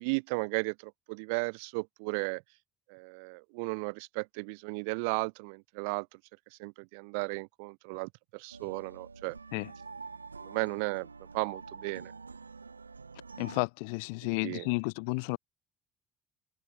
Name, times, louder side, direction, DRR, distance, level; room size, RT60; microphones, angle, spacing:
voice 1, 0.0-2.4 2.9-6.2 6.6-9.4 10.4-11.1 11.3-12.1 14.2-14.7, right 34 dB, 65° right, 3.0 m, -35 dB
sound 1, 8.5-13.6, right 4 dB, 85° right, 1.4 m, -47 dB
voice 2, 13.4-15.4, left 33 dB, 65° left, 0.4 m, -32 dB
figure-of-eight pair, 55°, 0 cm